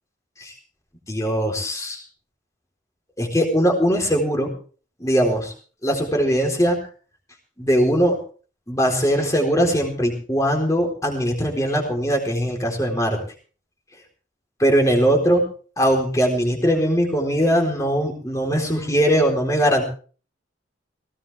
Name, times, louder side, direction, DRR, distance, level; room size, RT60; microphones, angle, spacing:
voice 1, 1.1-2.0 3.2-4.5 5.0-5.5 5.8-6.8 7.6-8.2 8.7-13.2 14.6-15.4 15.8-19.8, equal, 15° left, 1 dB, 4.1 m, -20 dB
18.5 x 17.5 x 3.5 m, 0.40 s
head